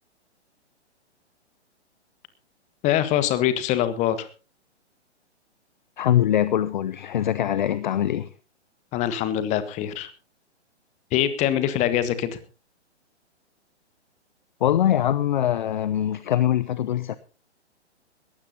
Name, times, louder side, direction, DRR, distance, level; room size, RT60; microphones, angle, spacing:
voice 1, 2.8-4.3 8.9-10.1 11.1-12.4, left 11 dB, 20° left, 1.6 m, -23 dB
voice 2, 6.0-8.3 14.6-17.2, left 11 dB, 40° left, 0.7 m, -23 dB
20.5 x 15.5 x 2.8 m
figure-of-eight pair, 125°, 35 cm